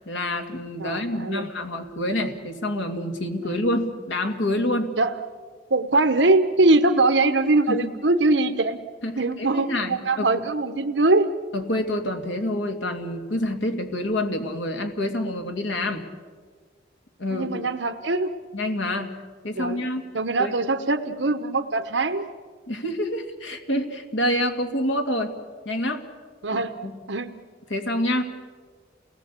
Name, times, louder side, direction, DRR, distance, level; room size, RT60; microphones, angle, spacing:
voice 1, 0.1-5.0 7.7-7.8 9.0-10.3 11.5-16.0 17.2-17.5 18.5-19.1 19.4-20.0 20.4-20.5 22.7-25.4 25.7-26.0 26.5-26.9 27.7-28.2, left 1 dB, 90° left, 5 dB, 2.4 m, -27 dB
voice 2, 0.8-1.5 3.4-3.6 5.0-5.1 5.7-8.8 9.2-11.3 17.3-18.3 19.6-19.9 20.1-22.3 26.4-26.8 27.1-27.3, right 2 dB, 75° right, 7 dB, 1.1 m, -22 dB
29.0 x 18.5 x 8.4 m, 1.5 s
head